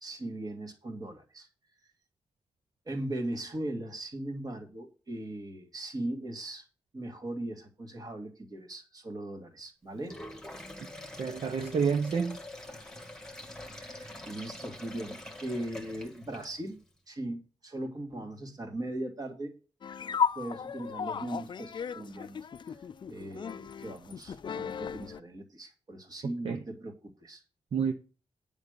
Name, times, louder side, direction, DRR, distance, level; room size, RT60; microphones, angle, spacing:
voice 1, 0.0-1.5 2.9-6.7 6.9-10.2 13.8-16.8 17.1-19.5 20.4-22.4 23.1-27.4, right 1 dB, 35° right, 2.1 m, -39 dB
Sink (filling or washing), 9.9-16.8, left 1 dB, 5° left, 1.7 m, -45 dB
voice 2, 11.2-12.4 26.2-26.6 27.7-27.9, right 6 dB, 55° right, 0.8 m, -29 dB
sound 1, 19.8-25.2, left 7 dB, 45° left, 0.4 m, -35 dB
9.7 x 5.3 x 6.6 m
wide cardioid pair, 165°, 11 cm